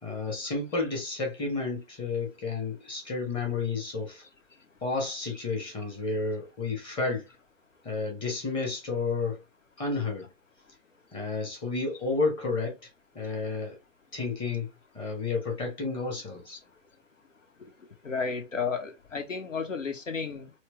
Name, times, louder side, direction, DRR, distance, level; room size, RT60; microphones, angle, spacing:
voice 1, 0.0-4.2 4.8-7.3 7.8-9.4 9.8-10.3 11.1-12.8 13.1-13.8 14.1-14.7 14.9-16.6, left 3 dB, 15° left, 1.1 m, -31 dB
voice 2, 18.0-20.5, left 5 dB, 70° left, 1.3 m, -32 dB
4.4 x 2.3 x 3.1 m
figure-of-eight pair, 125°, 39 cm